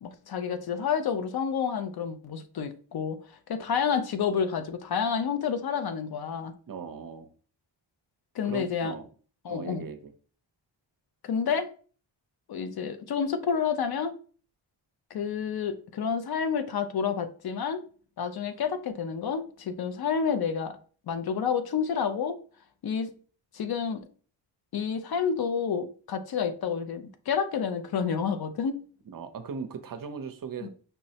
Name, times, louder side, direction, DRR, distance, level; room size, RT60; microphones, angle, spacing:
voice 1, 0.0-3.2 3.5-6.5 8.3-8.9 9.4-9.9 11.2-11.7 12.5-14.1 15.1-17.8 18.2-20.8 21.1-22.4 22.8-23.1 23.5-24.0 24.7-28.8 30.6-30.7, left 6 dB, 55° left, 0.5 m, -29 dB
voice 2, 6.7-7.3 8.4-9.0 9.5-10.1 29.1-30.7, right 6 dB, 45° right, 0.5 m, -38 dB
5.5 x 2.0 x 2.7 m
cardioid pair, 85°, 47 cm